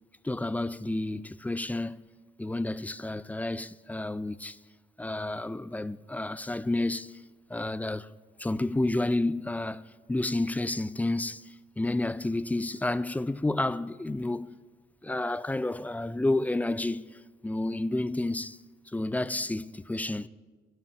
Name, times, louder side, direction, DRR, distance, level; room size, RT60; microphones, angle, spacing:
voice 1, 0.2-2.1 2.4-4.6 5.0-7.2 7.5-8.1 8.4-9.8 10.1-14.6 15.0-18.6 18.9-20.3, left 2 dB, 10° left, 0.3 m, -30 dB
11.5 x 7.9 x 7.5 m
cardioid pair, 90°, 20 cm